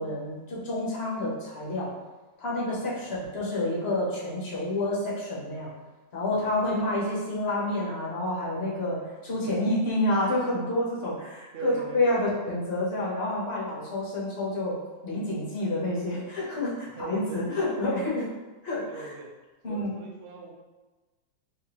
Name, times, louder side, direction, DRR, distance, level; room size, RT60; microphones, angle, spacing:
voice 1, 0.0-1.9 2.4-5.7 6.1-14.8 15.0-18.3 18.6-19.1 19.6-19.9, left 1 dB, 40° left, -6 dB, 1.1 m, -29 dB
voice 2, 2.7-3.2 6.3-6.8 9.4-9.8 11.5-12.3 16.9-17.4 18.9-19.3 19.7-20.5, right 4 dB, 75° right, 0 dB, 0.6 m, -41 dB
3.5 x 3.2 x 3.0 m, 1.2 s
omnidirectional pair, 2.0 m